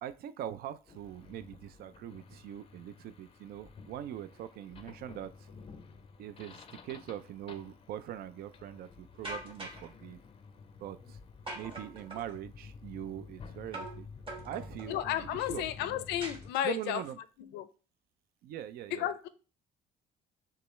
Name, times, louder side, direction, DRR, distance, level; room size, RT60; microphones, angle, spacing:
voice 1, 0.0-5.5 6.2-10.2 10.8-11.2 11.5-14.1 14.4-16.0 16.6-17.2 18.4-19.1, right 11 dB, 65° right, 13 dB, 0.4 m, -42 dB
sound 1, 0.9-16.5, left 5 dB, 30° left, 0.5 m, -52 dB
sound 2, 9.2-9.9 11.5-12.4 13.7-14.0 14.3-15.0 16.2-17.0, right 1 dB, 30° right, 1.3 m, -43 dB
voice 2, 14.9-17.0 17.5-17.7 18.9-19.3, left 11 dB, 85° left, 13 dB, 0.5 m, -33 dB
6.5 x 2.3 x 3.0 m, 0.36 s
cardioid pair, 110°, 17 cm